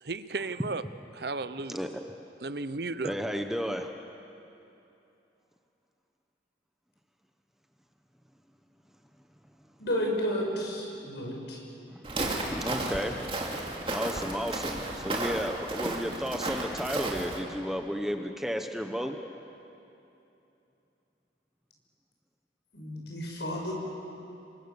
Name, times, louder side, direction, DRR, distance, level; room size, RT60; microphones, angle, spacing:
voice 1, 0.0-0.8 1.1-1.9 2.4-3.1, right 3 dB, 60° right, 13 dB, 0.8 m, -34 dB
voice 2, 1.7-2.0 3.0-3.9 11.9-13.2 13.9-19.2, equal, ahead, 5 dB, 0.9 m, -33 dB
voice 3, 9.8-11.6 22.7-23.7, equal, 70° left, -1 dB, 6.4 m, -32 dB
Walk footsteps, 12.0-17.4, right 2 dB, 30° right, 2.8 m, -33 dB
28.5 x 24.0 x 7.1 m, 2.9 s
head